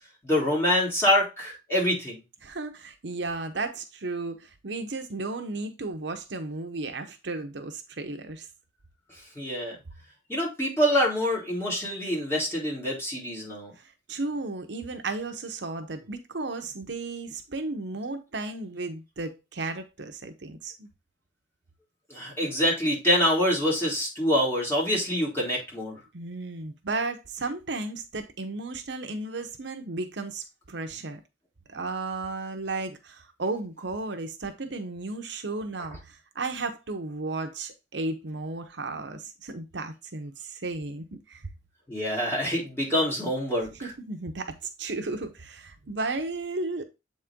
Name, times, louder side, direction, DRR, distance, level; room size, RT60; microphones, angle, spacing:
voice 1, 0.2-2.2 9.3-9.8 10.3-13.7 22.1-26.0 41.9-43.9, equal, 15° left, 3.3 m, -26 dB
voice 2, 2.4-8.5 13.8-20.9 26.1-31.2 31.7-41.4 43.8-46.8, right 3 dB, 70° right, 0.9 m, -34 dB
7.7 x 4.3 x 3.6 m
head